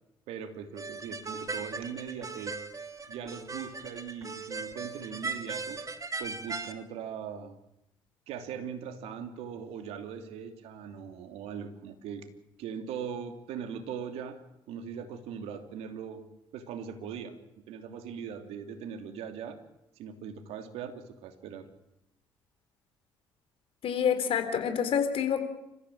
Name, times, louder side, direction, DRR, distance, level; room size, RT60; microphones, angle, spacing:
voice 1, 0.3-2.6 3.1-5.8 6.2-7.6 8.3-12.3 12.6-14.4 14.7-16.2 16.5-17.4 17.7-19.6 20.0-21.6, right 7 dB, 70° right, 8 dB, 2.8 m, -40 dB
sound 1, 0.8-6.7, right 4 dB, 30° right, 2.2 m, -38 dB
voice 2, 23.8-25.4, left 8 dB, 60° left, 8 dB, 3.8 m, -27 dB
28.5 x 15.0 x 8.8 m, 0.87 s
hypercardioid pair, 50°, 11 cm